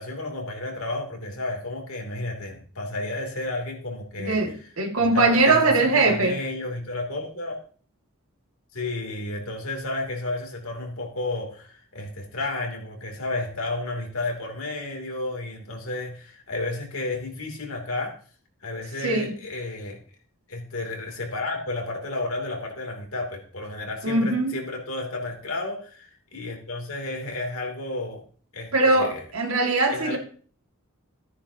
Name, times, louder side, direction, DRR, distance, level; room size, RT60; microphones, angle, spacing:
voice 1, 0.0-4.4 5.0-7.6 8.7-18.2 18.6-20.0 20.5-28.2 28.5-29.2 29.9-30.2, left 2 dB, 75° left, 3.0 m, -32 dB
voice 2, 4.2-6.4 19.0-19.4 24.0-24.5 28.7-30.2, right 2 dB, 80° right, 2.1 m, -21 dB
14.5 x 9.8 x 2.9 m
head